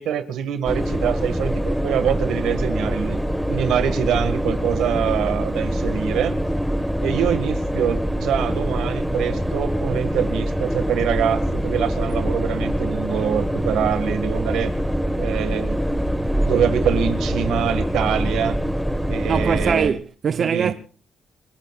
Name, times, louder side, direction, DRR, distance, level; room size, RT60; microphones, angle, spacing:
voice 1, 0.0-3.2 3.5-6.4 7.0-14.7 15.2-15.8 16.4-18.6 19.1-19.9 20.4-20.7, right 9 dB, 80° right, 1.8 m, -24 dB
sound 1, 0.7-19.9, equal, ahead, 1.5 m, -24 dB
voice 2, 19.3-20.7, right 7 dB, 50° right, 0.8 m, -22 dB
29.5 x 18.0 x 2.4 m
cardioid pair, 90°, 0 cm